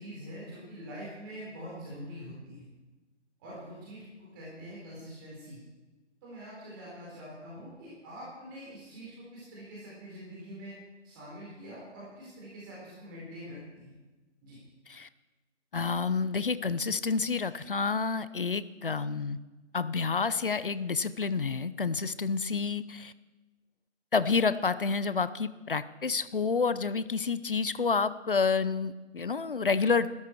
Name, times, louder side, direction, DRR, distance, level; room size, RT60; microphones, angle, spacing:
voice 1, 0.0-2.6 3.4-5.6 6.2-10.7 11.0-13.9 14.4-14.6, equal, 20° right, -7 dB, 4.3 m, -44 dB
voice 2, 15.7-19.4 19.7-23.1 24.1-30.1, left 5 dB, 45° left, 15 dB, 0.7 m, -29 dB
21.5 x 13.0 x 4.6 m, 1.2 s
figure-of-eight pair, 150°, 36 cm